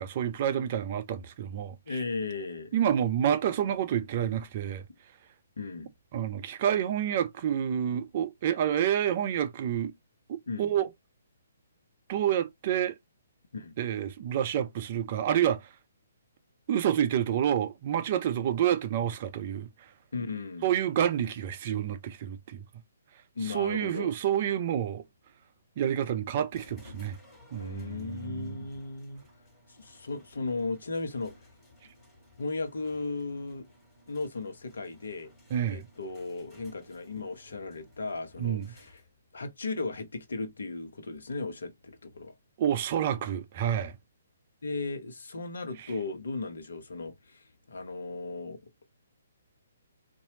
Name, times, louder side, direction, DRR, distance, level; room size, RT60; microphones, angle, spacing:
voice 1, 0.0-2.0 2.7-4.8 6.1-9.9 10.3-10.9 12.1-12.9 13.8-15.6 16.7-19.7 20.6-22.6 23.4-25.0 25.8-27.2 27.5-28.6 35.5-35.9 38.4-38.7 42.6-43.9, right 10 dB, 40° right, 0.6 m, -28 dB
voice 2, 1.9-2.7 5.6-5.9 10.5-10.7 13.5-13.8 20.1-20.7 23.3-24.2 27.5-29.2 29.7-31.3 32.4-33.7 34.1-35.3 35.7-39.0 39.3-42.3 44.6-48.6, left 3 dB, 65° left, 1.0 m, -36 dB
sound 1, 26.5-39.3, left 1 dB, 10° left, 2.8 m, -57 dB
4.2 x 2.6 x 2.8 m
figure-of-eight pair, 130°, 0 cm